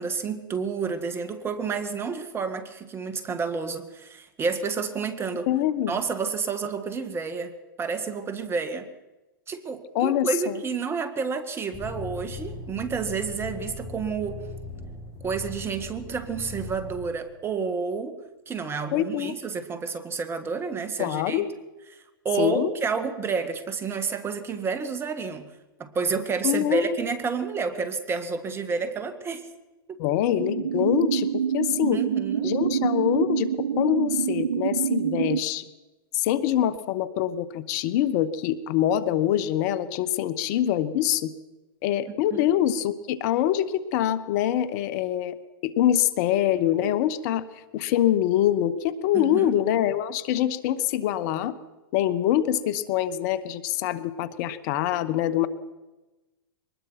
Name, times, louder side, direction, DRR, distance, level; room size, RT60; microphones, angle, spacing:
voice 1, 0.0-5.5 5.9-8.9 9.5-14.4 15.2-18.2 18.5-21.5 22.2-25.5 25.8-29.4 29.9-30.0 31.9-32.5 42.3-42.5 49.1-49.5, right 5 dB, 20° right, 10 dB, 2.1 m, -30 dB
voice 2, 5.5-6.0 9.9-10.6 18.9-19.4 21.0-21.5 22.4-22.7 26.4-27.0 30.0-32.0 32.4-35.6 36.1-41.3 41.8-45.3 45.6-47.4 47.7-51.5 51.9-55.5, left 11 dB, 50° left, 15 dB, 1.3 m, -24 dB
sound 1, 11.7-17.0, left 3 dB, 30° left, 7.8 m, -39 dB
sound 2, 30.4-35.4, right 8 dB, 75° right, 1.1 m, -26 dB
23.5 x 20.0 x 6.0 m, 1.1 s
hypercardioid pair, 115°, 12 cm